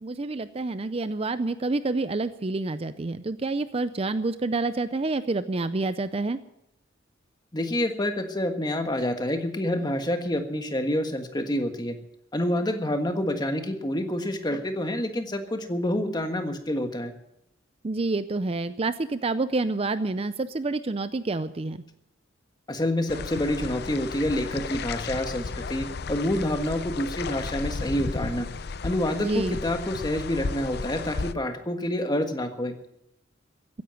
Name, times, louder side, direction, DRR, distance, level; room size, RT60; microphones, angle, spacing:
voice 1, 0.0-6.4 17.8-21.8 29.2-29.6, right 3 dB, 30° right, 13 dB, 0.5 m, -28 dB
voice 2, 7.5-12.0 12.3-17.1 22.7-28.5 28.8-32.8, left 1 dB, 20° left, 6 dB, 1.5 m, -28 dB
sound 1, 23.1-31.3, left 4 dB, 55° left, 0.6 m, -34 dB
15.5 x 10.5 x 7.7 m, 0.79 s
head